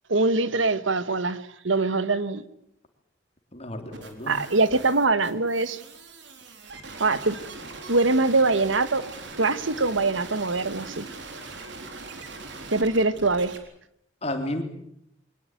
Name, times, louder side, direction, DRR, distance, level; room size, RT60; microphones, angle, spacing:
voice 1, 0.1-2.4 4.3-5.8 7.0-7.4 7.9-9.0 9.4-11.1 12.7-13.5, right 3 dB, 85° right, 14 dB, 1.5 m, -23 dB
voice 2, 3.5-4.4 14.2-14.6, left 1 dB, 35° left, 5 dB, 3.4 m, -32 dB
sound 1, 3.9-13.6, right 3 dB, 65° right, 4.0 m, -41 dB
23.0 x 20.0 x 9.2 m, 0.74 s
head